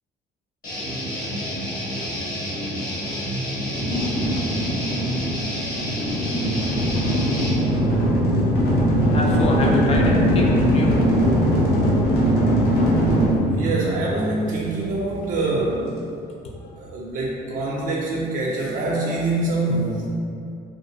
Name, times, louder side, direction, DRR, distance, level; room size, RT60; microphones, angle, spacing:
Guitar, 0.6-7.5, equal, 55° left, 1.0 m, -29 dB
sound 1, 3.7-14.7, equal, 80° left, 0.6 m, -21 dB
voice 1, 9.1-11.0 11.3-11.4 11.6-11.9, left 1 dB, 40° left, -2 dB, 0.4 m, -25 dB
voice 2, 13.5-16.0 16.8-20.1, right 2 dB, 55° right, -4 dB, 0.4 m, -25 dB
2.4 x 2.1 x 2.6 m, 2.4 s
cardioid pair, 110°, 17 cm